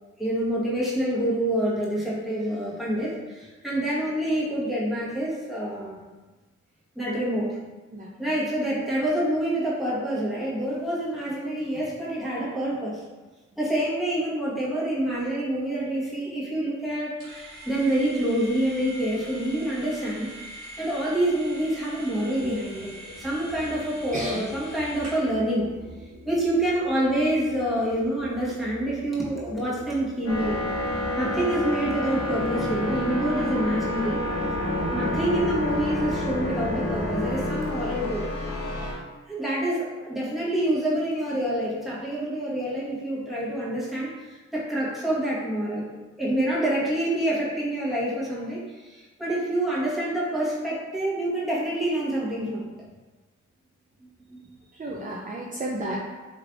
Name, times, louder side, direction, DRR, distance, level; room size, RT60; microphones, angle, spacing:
voice 1, 0.2-6.0 6.9-7.6 8.2-13.0 13.6-25.7 26.2-30.6 31.2-34.2 34.9-38.3 39.3-45.9 46.2-52.7 54.3-54.4 55.9-56.0, right 1 dB, ahead, -8 dB, 1.3 m, -27 dB
voice 2, 7.9-8.3 22.4-22.5 24.1-24.5 26.0-26.3 54.7-56.0, right 1 dB, 25° right, -3 dB, 0.5 m, -33 dB
sound 1, 17.2-25.4, right 1 dB, 85° right, 1.3 m, -43 dB
sound 2, 22.9-34.3, right 1 dB, 45° right, 1.2 m, -47 dB
sound 3, 30.3-38.9, left 1 dB, 50° left, 1.2 m, -28 dB
3.2 x 3.2 x 2.4 m, 1.2 s
cardioid pair, 60°, 31 cm